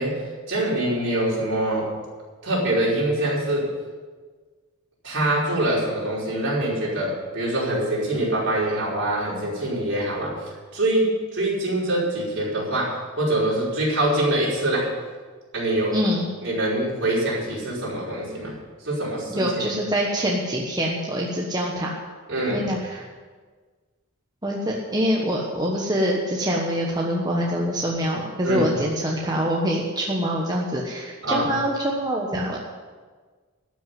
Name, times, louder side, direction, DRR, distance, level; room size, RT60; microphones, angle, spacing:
voice 1, 0.0-1.9 2.4-3.7 5.0-10.4 10.7-14.9 15.5-16.0 16.4-18.5 18.8-19.6 22.3-22.7 28.4-28.7 31.2-31.5, right 1 dB, 55° right, -6 dB, 5.0 m, -24 dB
voice 2, 15.9-16.3 19.3-22.0 22.5-23.0 24.4-32.6, equal, 20° right, -2 dB, 1.2 m, -25 dB
13.0 x 6.2 x 9.4 m, 1.5 s
head